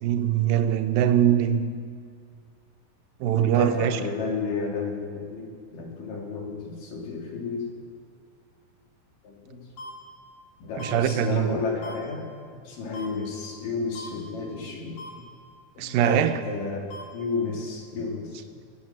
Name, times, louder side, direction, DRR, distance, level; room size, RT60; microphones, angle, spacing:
voice 1, 0.0-1.7 3.2-4.0 10.8-11.6 15.8-16.4, right 10 dB, 80° right, 2.5 m, -22 dB
voice 2, 3.3-7.7 9.2-9.7 10.6-12.3 12.5-15.3 15.8-16.8 17.1-18.6, left 4 dB, 65° left, 3.9 m, -32 dB
sound 1, 9.8-9.9 10.8-10.9 11.8-11.9 12.9-13.1 13.9-14.1 15.0-15.1 16.0-16.1 16.9-17.0, left 1 dB, 85° left, 4.0 m, -39 dB
21.5 x 8.5 x 7.8 m
omnidirectional pair, 4.1 m